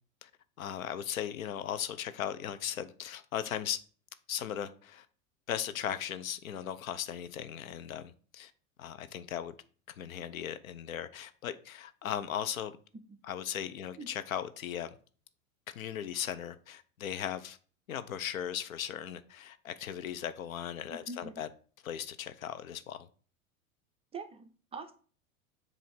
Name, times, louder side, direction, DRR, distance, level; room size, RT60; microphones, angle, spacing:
voice 1, 0.6-3.8 4.3-5.1 5.5-8.5 8.8-9.5 10.0-12.8 13.3-14.9 15.7-17.6 17.9-21.5 21.8-23.1, left 10 dB, 70° left, 0.7 m, -37 dB
voice 2, 20.9-21.4 24.1-24.9, right 3 dB, 15° right, 0.5 m, -44 dB
7.5 x 2.7 x 5.1 m
figure-of-eight pair, 85°, 42 cm